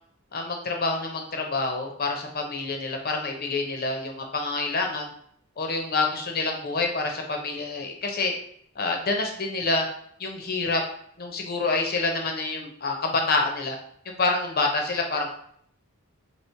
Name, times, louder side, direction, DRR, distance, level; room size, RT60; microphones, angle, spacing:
voice 1, 0.3-5.1 5.6-8.3 8.8-9.9 10.2-10.8 11.2-13.8 14.2-15.3, left 3 dB, 45° left, 2 dB, 0.7 m, -27 dB
3.0 x 3.0 x 4.4 m, 0.65 s
head